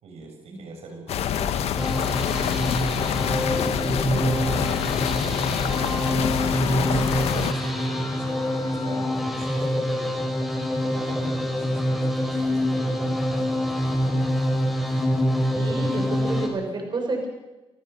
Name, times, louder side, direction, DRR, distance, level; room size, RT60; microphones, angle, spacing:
voice 1, 0.0-1.7 2.3-5.7 6.6-10.3 10.8-14.3 16.1-16.6, right 3 dB, 80° right, 3 dB, 6.8 m, -41 dB
sound 1, 1.1-7.5, left 9 dB, 85° left, 1.3 m, -26 dB
sound 2, 1.8-16.5, equal, ahead, 6.6 m, -25 dB
sound 3, 6.2-9.5, left 4 dB, 35° left, 3.3 m, -39 dB
voice 2, 15.5-17.3, right 2 dB, 45° right, 3 dB, 6.4 m, -30 dB
28.0 x 15.0 x 6.9 m, 1.1 s
cardioid pair, 90°, 10 cm